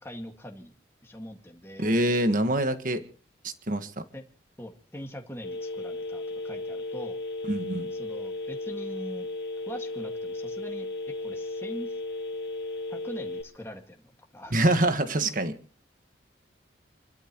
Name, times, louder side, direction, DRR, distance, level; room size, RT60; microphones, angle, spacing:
voice 1, 0.0-0.7 1.0-2.0 4.1-4.2 4.6-7.2 8.0-9.3 9.7-10.9 11.2-11.9 12.9-14.5, equal, 15° left, 2 dB, 2.0 m, -42 dB
voice 2, 1.8-3.0 3.4-3.9 7.5-7.9 14.5-15.5, right 1 dB, 45° right, 8 dB, 1.6 m, -25 dB
Telephone, 5.4-13.4, left 2 dB, 55° left, 1.9 m, -35 dB
29.0 x 12.5 x 3.1 m, 0.40 s
head